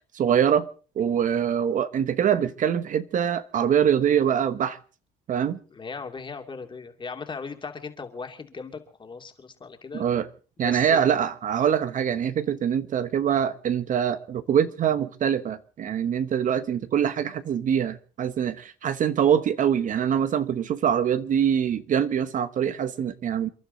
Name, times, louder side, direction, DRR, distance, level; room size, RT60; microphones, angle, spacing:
voice 1, 0.1-0.7 1.0-4.8 5.3-5.6 9.9-10.3 10.6-23.5, right 8 dB, 50° right, 1.0 m, -24 dB
voice 2, 5.7-10.1 10.6-11.0, left 4 dB, 30° left, 2.6 m, -38 dB
29.0 x 11.5 x 3.9 m
cardioid pair, 110°, 17 cm